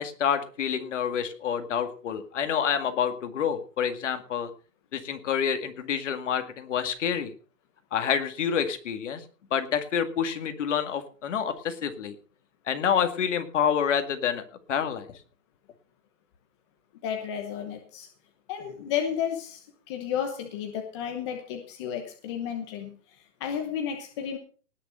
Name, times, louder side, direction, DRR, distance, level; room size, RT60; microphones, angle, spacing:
voice 1, 0.0-4.5 4.9-7.3 7.9-9.2 9.5-12.2 12.7-14.4 14.7-15.2, left 8 dB, 45° left, 8 dB, 2.0 m, -28 dB
voice 2, 17.0-18.1 18.5-24.4, left 8 dB, 15° left, 4 dB, 1.0 m, -32 dB
19.0 x 6.8 x 5.6 m, 0.40 s
hypercardioid pair, 165°, 48 cm